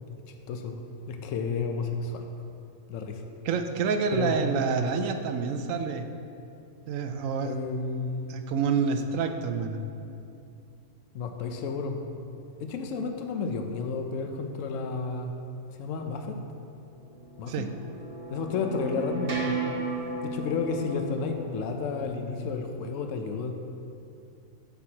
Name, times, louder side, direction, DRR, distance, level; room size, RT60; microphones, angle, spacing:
voice 1, 0.3-2.2 2.9-3.2 4.1-4.4 7.4-8.4 11.1-12.0 12.6-15.3 15.8-16.4 17.4-17.7 18.3-19.6 20.2-23.5, left 4 dB, 75° left, 4 dB, 1.0 m, -31 dB
voice 2, 3.4-6.1 6.9-7.5 8.3-9.8 17.5-17.7, right 5 dB, 75° right, 7 dB, 1.0 m, -28 dB
sound 1, 17.0-22.8, right 3 dB, 60° right, 1.4 m, -36 dB
13.5 x 6.1 x 2.9 m, 2.7 s
omnidirectional pair, 1.4 m